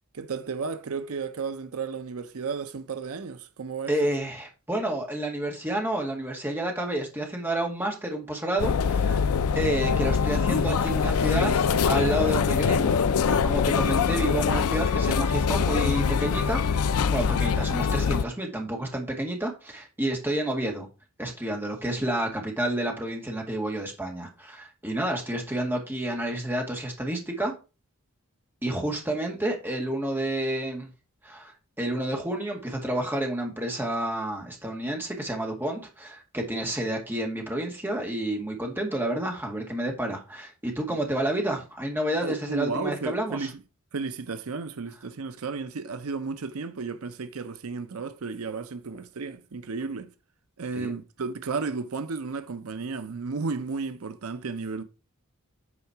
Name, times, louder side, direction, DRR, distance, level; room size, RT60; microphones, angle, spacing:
voice 1, 0.1-4.0 40.9-41.0 42.2-43.6 43.9-50.1 50.6-54.8, right 4 dB, 75° right, 0.6 m, -33 dB
voice 2, 3.9-9.3 9.6-20.9 21.2-27.5 28.6-30.9 31.2-43.5 50.8-50.9, right 1 dB, 10° right, 1.9 m, -30 dB
sound 1, 8.6-18.2, left 6 dB, 85° left, 0.4 m, -24 dB
8.5 x 4.7 x 4.6 m
head